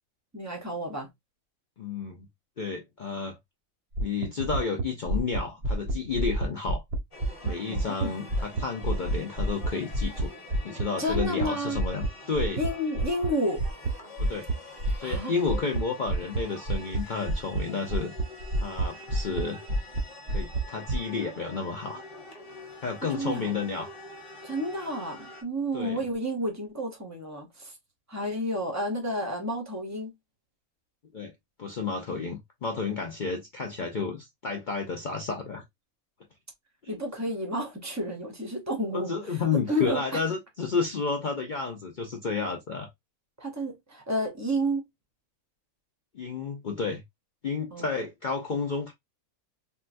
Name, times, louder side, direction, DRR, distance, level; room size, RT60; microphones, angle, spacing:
voice 1, 0.3-1.1 7.7-8.2 11.0-11.8 12.6-13.6 15.0-15.3 23.1-23.6 24.4-27.7 28.1-30.1 36.9-39.4 39.7-40.2 43.4-44.8 47.7-47.9, equal, 20° right, 0.5 m, -31 dB
voice 2, 1.8-2.3 2.6-3.4 4.0-6.8 7.4-10.3 10.6-12.6 14.2-14.5 15.0-18.1 18.6-19.6 20.3-22.0 22.8-23.9 25.7-26.0 31.1-31.3 31.6-35.6 36.8-37.0 38.9-42.9 46.1-47.0 47.4-48.9, left 5 dB, 80° left, 0.4 m, -31 dB
sound 1, 3.9-8.0 8.3-11.4 11.7-12.1 12.4-12.7 13.0-13.3 13.6-13.9 14.2-14.5 14.8-15.2 15.5-15.8 16.1-16.4 16.7-17.0 17.3-17.6 17.9-18.8 19.1-19.4 19.7-20.0 20.3-21.0, right 1 dB, 55° right, 0.8 m, -27 dB
sound 2, 7.1-25.4, left 2 dB, 25° left, 0.9 m, -46 dB
3.7 x 2.2 x 2.5 m
omnidirectional pair, 1.6 m